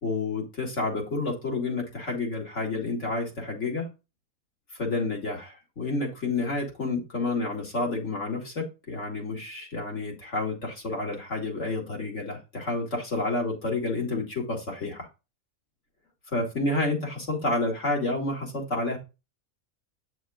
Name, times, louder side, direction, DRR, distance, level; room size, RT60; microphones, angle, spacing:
voice 1, 0.0-3.9 4.8-15.1 16.3-19.0, left 2 dB, 65° left, 2.5 m, -29 dB
8.9 x 6.4 x 2.4 m
omnidirectional pair, 1.4 m